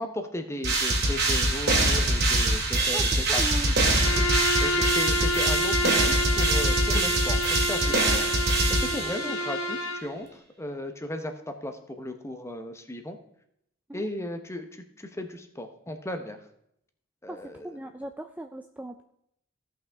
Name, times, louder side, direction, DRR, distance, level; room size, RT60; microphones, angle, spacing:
voice 1, 0.0-3.7 4.1-4.3 4.6-13.2 13.9-16.4 17.2-17.8, left 1 dB, 15° left, 6 dB, 0.9 m, -36 dB
sound 1, 0.6-9.5, right 2 dB, 55° right, 2.2 m, -24 dB
voice 2, 2.9-3.7 8.9-9.3 13.9-14.1 17.3-17.4 17.6-19.0, right 1 dB, 10° right, 6 dB, 0.4 m, -38 dB
Bowed string instrument, 3.9-10.1, left 1 dB, 80° left, 1.5 m, -28 dB
16.0 x 5.7 x 3.5 m, 0.75 s
head